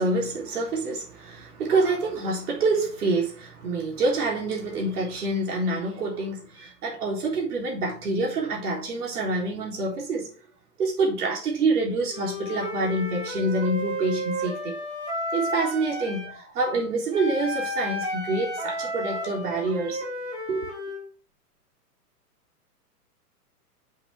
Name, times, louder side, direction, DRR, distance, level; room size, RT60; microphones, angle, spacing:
voice 1, 0.0-10.3 10.8-14.7 15.3-20.1 20.5-20.7, right 2 dB, 65° right, 3.8 m, -27 dB
Wind instrument woodwind instrument, 12.1-16.3 17.1-21.0, equal, 15° right, 3.1 m, -32 dB
7.7 x 5.8 x 3.6 m
hypercardioid pair, 115°, 48 cm